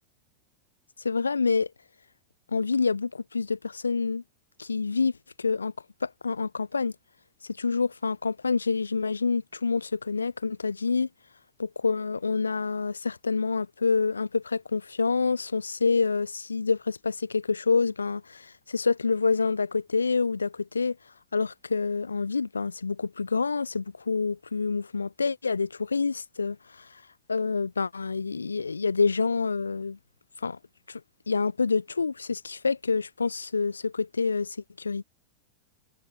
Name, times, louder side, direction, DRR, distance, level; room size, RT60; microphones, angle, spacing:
voice 1, 1.0-1.7 2.5-4.2 4.6-5.1 5.4-5.7 6.0-6.9 7.6-11.1 11.6-21.0 21.3-26.9 27.3-30.0 30.4-30.6 30.9-31.0 31.3-35.0, left 4 dB, 75° left, 2.1 m, -27 dB
figure-of-eight pair, 90°, 0 cm